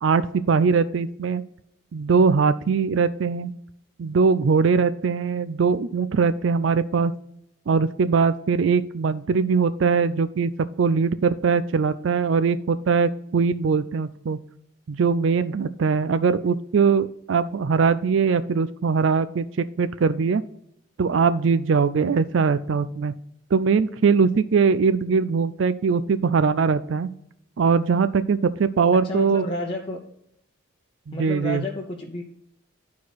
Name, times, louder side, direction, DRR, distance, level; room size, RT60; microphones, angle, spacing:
voice 1, 0.0-1.4 1.9-3.5 4.0-7.1 7.7-10.5 10.8-14.4 14.9-20.4 21.0-23.1 23.5-27.1 27.6-29.4 31.1-31.6, right 5 dB, 65° right, 12 dB, 0.4 m, -21 dB
voice 2, 29.0-30.0 31.1-32.2, left 2 dB, 25° left, -2 dB, 0.8 m, -30 dB
11.5 x 4.7 x 4.1 m, 0.75 s
head